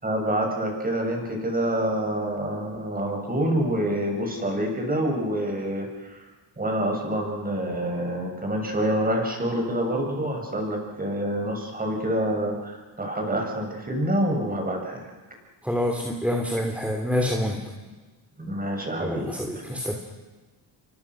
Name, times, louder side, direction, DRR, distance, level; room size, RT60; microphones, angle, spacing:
voice 1, 0.0-5.9 6.6-15.0 18.4-19.3, right 1 dB, 20° right, 2 dB, 7.3 m, -27 dB
voice 2, 15.6-17.6 19.0-19.9, left 1 dB, 5° right, 2 dB, 3.1 m, -27 dB
29.0 x 24.0 x 6.4 m, 1.3 s
cardioid pair, 105°, 48 cm